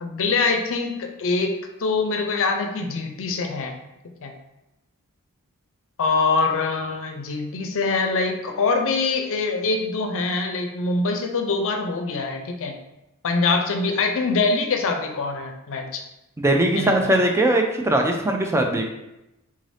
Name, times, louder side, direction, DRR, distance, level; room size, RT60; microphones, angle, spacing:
voice 1, 0.0-3.7 4.2-4.3 6.0-12.7 13.2-16.0 16.7-17.1, left 4 dB, 60° left, 4 dB, 0.5 m, -24 dB
voice 2, 16.4-18.9, right 1 dB, 10° right, 3 dB, 0.4 m, -20 dB
3.7 x 2.6 x 3.2 m, 0.92 s
head